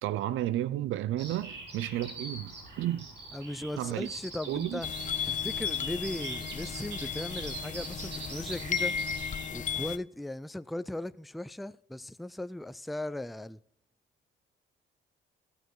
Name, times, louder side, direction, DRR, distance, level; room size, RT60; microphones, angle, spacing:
voice 1, 0.0-3.1 3.8-4.1 4.5-4.8, right 13 dB, 80° right, 0.5 m, -32 dB
Bird vocalization bird call bird song, 1.2-9.5, right 3 dB, 60° right, 3.6 m, -43 dB
voice 2, 3.3-4.9 5.3-9.0 9.5-13.6, left 1 dB, ahead, 0.3 m, -38 dB
sound 1, 4.8-10.0, left 7 dB, 40° left, 0.6 m, -34 dB
16.0 x 6.9 x 4.7 m
cardioid pair, 90°, 20 cm